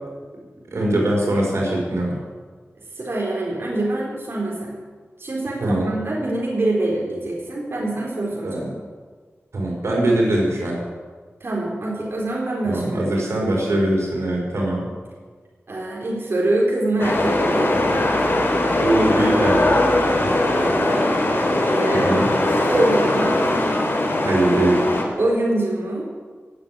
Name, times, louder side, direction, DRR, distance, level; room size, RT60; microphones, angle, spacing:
voice 1, 0.7-2.2 5.6-5.9 8.4-8.7 9.5-10.8 12.6-14.8 18.8-19.9 20.2-20.4 21.9-22.3 24.2-24.8, right 1 dB, 90° right, -2 dB, 4.7 m, -22 dB
voice 2, 2.9-4.8 5.2-8.5 11.4-13.9 14.8-14.9 15.7-17.7 20.5-21.0 21.7-23.4 25.2-26.1, right 1 dB, 55° right, -3 dB, 4.0 m, -25 dB
sound 1, 17.0-25.0, left 1 dB, 55° left, 3.3 m, -20 dB
17.5 x 7.9 x 8.9 m, 1.5 s
wide cardioid pair, 90°, 5 cm